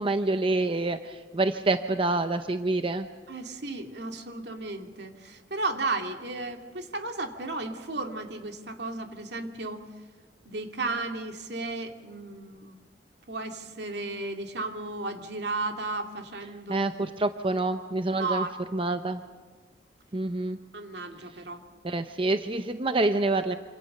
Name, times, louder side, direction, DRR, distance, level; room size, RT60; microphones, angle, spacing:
voice 1, 0.0-3.1 16.7-18.4 18.7-19.2 20.1-20.6 21.8-23.6, right 2 dB, 30° right, 8 dB, 0.7 m, -27 dB
voice 2, 3.3-9.8 10.4-12.8 13.3-16.9 18.2-18.5 20.7-21.6, right 3 dB, 70° right, 4 dB, 2.5 m, -34 dB
27.0 x 26.5 x 6.7 m, 1.4 s
head